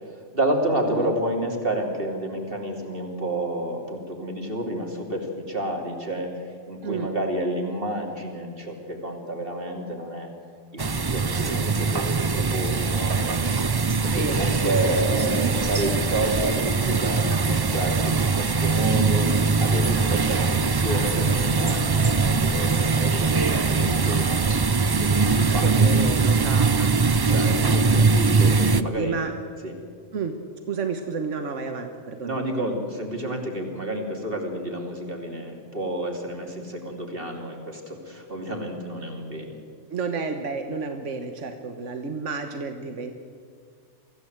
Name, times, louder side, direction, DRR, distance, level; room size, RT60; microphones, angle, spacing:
voice 1, 0.0-10.3 10.7-13.5 14.0-19.3 19.6-24.5 25.0-25.7 26.0-26.1 27.3-29.2 29.6-29.7 32.2-39.5, right 1 dB, 50° right, 2 dB, 3.2 m, -30 dB
sound 1, 10.8-28.8, right 4 dB, 30° right, 0.4 m, -22 dB
voice 2, 14.0-15.0 15.3-15.5 15.9-16.0 20.3-20.5 25.6-28.1 28.7-29.3 30.1-30.4 30.7-32.4 39.9-43.1, right 4 dB, 80° right, 6 dB, 1.6 m, -31 dB
24.5 x 15.5 x 8.0 m, 2.1 s
omnidirectional pair, 1.2 m